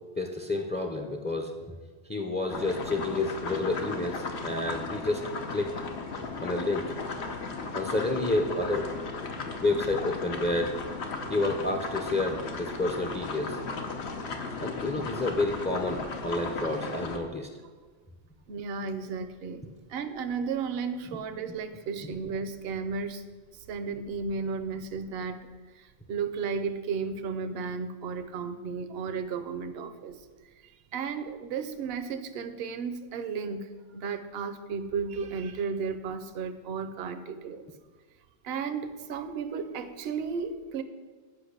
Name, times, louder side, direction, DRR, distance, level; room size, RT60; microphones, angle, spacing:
voice 1, 0.2-1.5 2.1-5.7 6.4-6.9 7.7-8.9 9.6-10.8 11.3-13.6 14.6-17.5 21.1-21.2, left 2 dB, 15° left, 3 dB, 0.4 m, -29 dB
sound 1, 2.5-17.2, left 4 dB, 80° left, 1.2 m, -36 dB
voice 2, 18.5-19.6 19.9-23.2 23.5-25.5 25.7-30.2 30.6-37.7 38.4-40.8, right 5 dB, 70° right, 9 dB, 0.8 m, -34 dB
8.4 x 5.3 x 6.4 m, 1.4 s
omnidirectional pair, 1.1 m